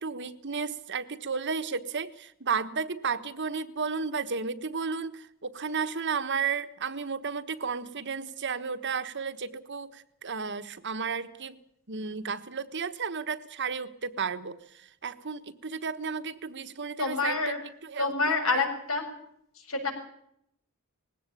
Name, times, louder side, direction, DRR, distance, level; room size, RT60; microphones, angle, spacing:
voice 1, 0.0-11.6 11.9-17.4 17.8-18.1, right 5 dB, 55° right, 11 dB, 1.3 m, -33 dB
voice 2, 17.0-17.6 18.0-19.1 19.6-19.9, left 3 dB, 70° left, 5 dB, 6.8 m, -27 dB
20.0 x 17.0 x 8.6 m, 0.72 s
head